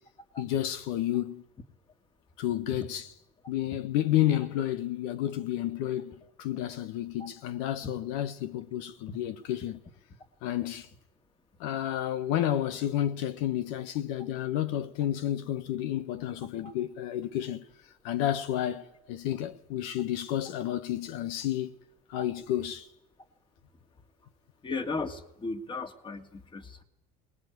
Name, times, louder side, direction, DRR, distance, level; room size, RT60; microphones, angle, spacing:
voice 1, 0.4-1.4 2.4-3.1 3.5-9.8 10.4-10.9 11.6-17.7 18.0-21.7 22.1-22.9, left 12 dB, 80° left, 1.3 m, -31 dB
voice 2, 24.6-26.8, left 3 dB, 25° left, 2.6 m, -36 dB
25.0 x 20.0 x 9.6 m
supercardioid pair, 100°, 19 cm